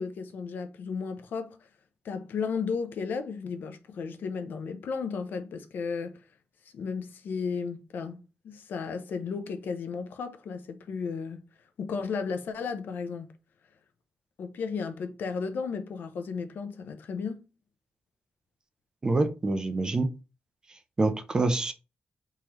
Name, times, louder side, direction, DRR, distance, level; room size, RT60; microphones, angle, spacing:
voice 1, 0.0-1.7 2.0-6.2 6.7-11.5 11.8-13.3 14.4-17.4, left 5 dB, 75° left, 0.5 m, -34 dB
voice 2, 19.0-20.1 21.0-21.7, right 2 dB, 20° right, 0.4 m, -26 dB
3.6 x 3.1 x 2.9 m
wide cardioid pair, 180°, 3 cm